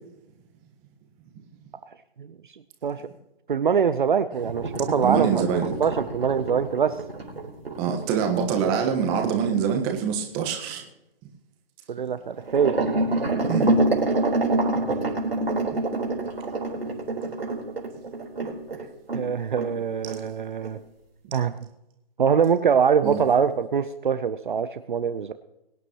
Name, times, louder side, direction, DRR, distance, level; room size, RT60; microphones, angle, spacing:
voice 1, 1.8-2.3 2.8-3.0 3.5-7.0 8.6-8.8 11.9-12.8 19.1-20.8 21.3-21.6 22.2-25.3, right 7 dB, 55° right, 11 dB, 0.7 m, -24 dB
sound 1, 4.4-9.0 12.4-19.3 19.6-19.7 20.1-20.2 20.6-20.7, right 2 dB, 75° right, 4.1 m, -27 dB
voice 2, 5.0-5.7 7.8-10.8 13.5-13.8 18.4-18.5 21.2-21.3 23.0-23.2, right 7 dB, 15° right, 3 dB, 1.3 m, -25 dB
23.0 x 9.7 x 3.0 m, 0.89 s
figure-of-eight pair, 150°, 30 cm